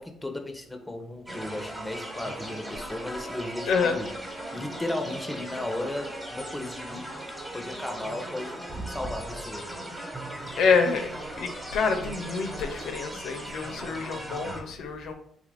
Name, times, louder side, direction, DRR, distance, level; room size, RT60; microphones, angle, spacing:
voice 1, 0.0-4.1 4.5-7.1 7.5-8.6 8.9-9.8, left 1 dB, 10° left, 5 dB, 0.5 m, -35 dB
sound 1, 1.3-14.6, right 1 dB, 15° right, 1.1 m, -38 dB
voice 2, 3.7-4.0 10.6-15.1, left 5 dB, 75° left, 5 dB, 0.4 m, -27 dB
3.4 x 2.4 x 3.3 m, 0.67 s
cardioid pair, 90°, 0 cm